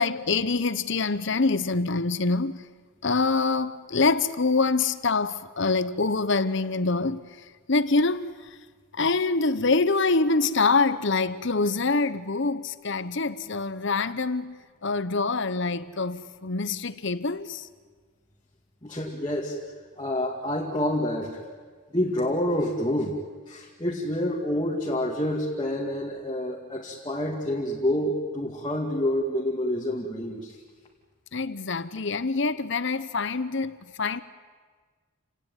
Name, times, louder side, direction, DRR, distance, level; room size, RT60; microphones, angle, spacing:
voice 1, 0.0-2.6 3.0-7.2 7.7-8.3 8.9-14.6 14.8-17.6 31.3-34.2, left 3 dB, 55° left, 0.9 m, -25 dB
voice 2, 18.8-19.5 20.0-21.3 21.9-23.1 23.5-30.5, left 1 dB, 20° left, 2.2 m, -28 dB
28.5 x 18.0 x 9.2 m
head